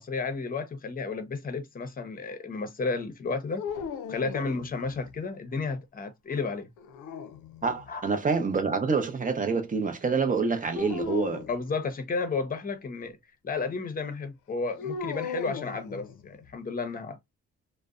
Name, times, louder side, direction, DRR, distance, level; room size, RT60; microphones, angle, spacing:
voice 1, 0.0-3.6 4.1-6.7 7.9-8.1 11.5-13.2 13.4-17.2, left 4 dB, 30° left, 0.7 m, -32 dB
sound 1, 3.6-5.1 6.8-7.9 10.7-11.5 14.8-16.4, left 6 dB, 80° left, 0.5 m, -36 dB
voice 2, 7.6-11.4, right 5 dB, 25° right, 0.6 m, -27 dB
2.6 x 2.1 x 2.3 m
cardioid pair, 90°, 30 cm